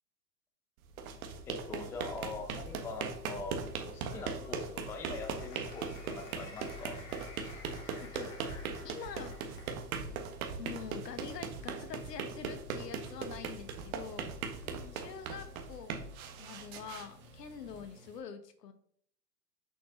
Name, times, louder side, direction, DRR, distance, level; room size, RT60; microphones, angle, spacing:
sound 1, 0.8-17.8, right 5 dB, 55° right, 1.5 m, -40 dB
voice 1, 1.4-7.0 14.6-15.1 17.7-17.8, left 3 dB, 5° left, 5 dB, 0.5 m, -44 dB
sound 2, 1.8-18.2, right 1 dB, 20° right, 1.8 m, -59 dB
Applause, 4.0-9.8, left 3 dB, 40° left, 2.7 m, -52 dB
voice 2, 8.0-8.3 8.8-9.4 10.1-10.2 10.6-16.0 16.4-18.7, left 7 dB, 75° left, 9 dB, 1.4 m, -46 dB
6.6 x 5.8 x 3.8 m, 0.64 s
hypercardioid pair, 120°, 49 cm